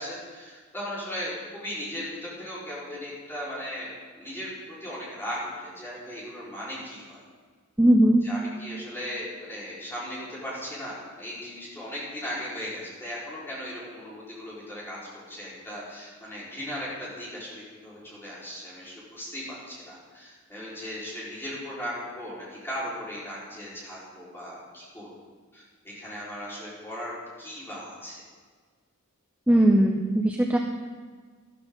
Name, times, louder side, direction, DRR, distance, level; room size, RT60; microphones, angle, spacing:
voice 1, 0.0-3.9 4.2-4.5 4.8-7.2 8.2-15.0 15.3-22.3 22.6-25.1 25.5-28.2, equal, 10° left, -8 dB, 4.5 m, -37 dB
voice 2, 7.8-8.2 29.5-30.6, right 1 dB, 5° right, 1 dB, 0.7 m, -19 dB
13.5 x 13.0 x 3.9 m, 1.5 s
head